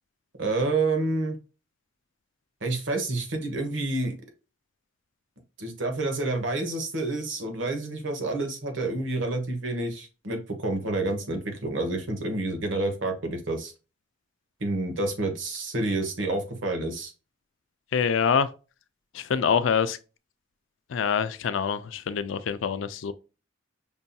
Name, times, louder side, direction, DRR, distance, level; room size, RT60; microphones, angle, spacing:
voice 1, 0.4-1.4 2.6-4.1 5.6-13.7 14.6-17.1, right 2 dB, 75° right, 1.0 m, -28 dB
voice 2, 17.9-18.5 19.1-20.0 20.9-23.1, left 7 dB, 75° left, 0.4 m, -25 dB
5.4 x 2.7 x 2.2 m
head